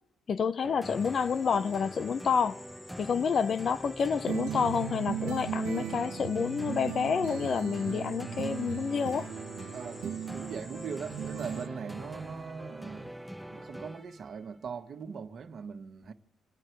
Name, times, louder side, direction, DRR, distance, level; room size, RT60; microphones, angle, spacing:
voice 1, 0.3-2.6 3.0-9.3, left 6 dB, 50° left, 0.7 m, -29 dB
sound 1, 0.6-14.4, equal, ahead, 0.5 m, -44 dB
sound 2, 0.8-11.7, left 2 dB, 15° left, 1.2 m, -52 dB
sound 3, 4.3-12.7, right 10 dB, 90° right, 0.8 m, -38 dB
voice 2, 9.7-13.1 13.5-16.1, right 6 dB, 55° right, 1.6 m, -40 dB
28.0 x 9.8 x 4.7 m
cardioid pair, 90°, 0 cm